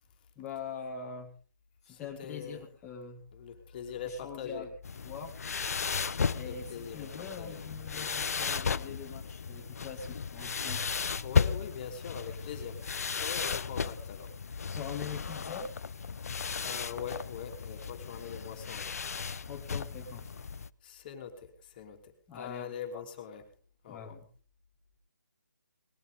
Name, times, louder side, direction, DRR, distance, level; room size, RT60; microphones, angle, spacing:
voice 1, 0.4-1.3 1.8-3.2 4.1-4.7 5.0-5.3 6.3-10.9 14.7-15.7 19.5-20.4 22.3-23.0 23.9-24.3, left 6 dB, 10° left, -4 dB, 2.1 m, -43 dB
voice 2, 1.9-2.7 3.3-4.7 6.4-7.7 7.9-8.2 11.2-12.9 13.2-14.3 16.6-19.0 20.8-23.4 23.8-24.2, left 7 dB, 30° left, 5 dB, 2.9 m, -42 dB
sound 1, 4.8-20.7, left 6 dB, 50° left, 0.8 m, -35 dB
21.0 x 15.0 x 3.6 m, 0.38 s
figure-of-eight pair, 150°, 10 cm